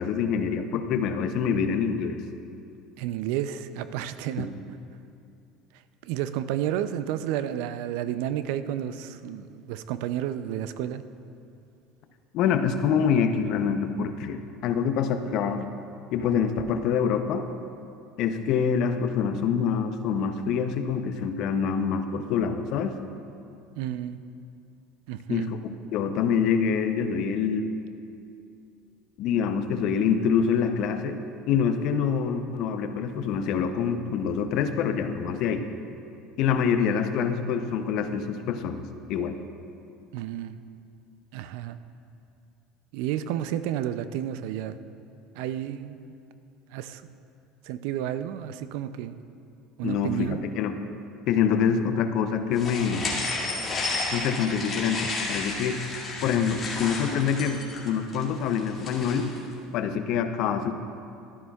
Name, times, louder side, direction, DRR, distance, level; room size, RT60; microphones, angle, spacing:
voice 1, 0.0-2.2 4.4-4.5 12.3-15.7 16.1-17.5 18.2-23.0 25.3-27.7 29.2-31.2 31.5-35.7 36.4-38.8 39.1-39.4 49.8-50.8 51.3-53.0 54.1-55.8 56.2-59.3 59.7-60.7, left 7 dB, 60° left, 8 dB, 0.6 m, -26 dB
voice 2, 3.0-4.5 6.0-11.0 23.8-24.2 25.1-25.5 40.1-40.6 41.3-41.8 42.9-44.8 45.4-46.1 46.7-47.0 47.6-49.2 49.8-50.4, right 11 dB, 75° right, 12 dB, 0.4 m, -31 dB
sound 1, 52.6-59.4, left 3 dB, 30° left, 2.2 m, -32 dB
12.5 x 11.0 x 2.3 m, 2.6 s
supercardioid pair, 110°, 0 cm